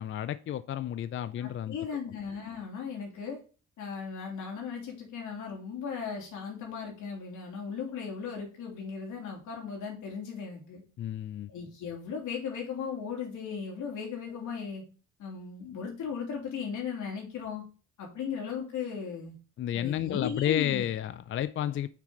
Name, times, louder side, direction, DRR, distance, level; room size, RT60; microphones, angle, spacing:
voice 1, 0.0-1.8 2.1-2.2 11.0-11.5 19.6-21.9, left 11 dB, 45° left, 0.4 m, -31 dB
voice 2, 1.4-3.4 3.8-10.8 11.5-14.8 15.2-17.6 18.0-19.4 19.7-20.8, left 6 dB, 80° left, 3.2 m, -37 dB
6.6 x 6.4 x 3.9 m
cardioid pair, 90°, 30 cm